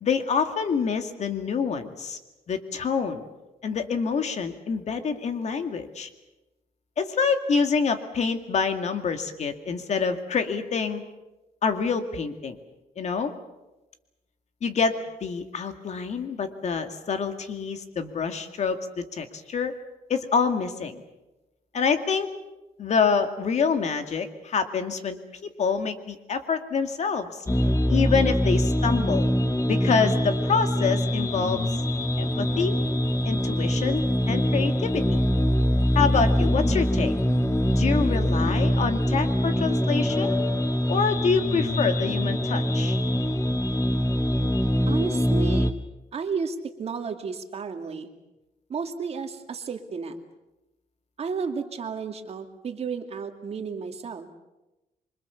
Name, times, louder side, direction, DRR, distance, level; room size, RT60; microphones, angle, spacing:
voice 1, 0.0-2.2 2.5-3.3 3.6-6.1 7.0-11.0 11.6-12.6 13.0-13.3 14.6-19.7 20.1-21.0 21.7-22.3 22.8-27.5 27.9-29.3 29.7-31.7 32.2-32.8 33.3-35.2 35.9-37.1 37.7-40.4 40.9-43.0, left 5 dB, 50° left, 7 dB, 2.3 m, -26 dB
sound 1, 27.5-45.7, equal, 20° left, 1.3 m, -24 dB
voice 2, 44.9-45.7 46.1-48.1 48.7-50.2 51.2-54.3, right 5 dB, 45° right, 6 dB, 2.4 m, -32 dB
27.0 x 24.5 x 7.1 m, 1.0 s
cardioid pair, 135°, 15 cm